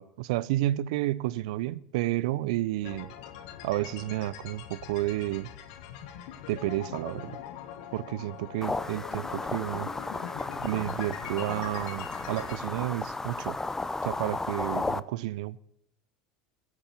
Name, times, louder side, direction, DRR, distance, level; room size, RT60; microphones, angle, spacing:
voice 1, 0.0-3.1 3.6-5.5 6.5-7.4 7.9-9.9 10.6-13.6 14.0-15.6, right 16 dB, 75° right, 0.5 m, -31 dB
sound 1, 2.8-12.6, left 9 dB, 70° left, 1.4 m, -43 dB
sound 2, 8.6-15.0, left 3 dB, 10° left, 0.6 m, -34 dB
15.0 x 8.4 x 7.6 m
hypercardioid pair, 90°, 4 cm